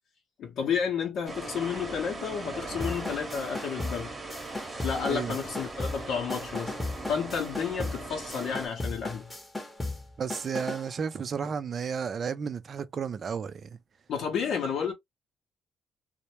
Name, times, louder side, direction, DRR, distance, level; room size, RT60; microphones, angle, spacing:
voice 1, 0.4-4.1 4.8-6.7 7.0-9.3 14.1-14.9, left 6 dB, 75° left, 0.7 m, -31 dB
sound 1, 1.2-8.7, right 2 dB, 25° right, 0.9 m, -40 dB
sound 2, 2.8-10.9, left 2 dB, 15° left, 0.8 m, -37 dB
voice 2, 10.2-13.7, right 6 dB, 50° right, 0.4 m, -32 dB
2.1 x 2.0 x 2.9 m
cardioid pair, 90°, 0 cm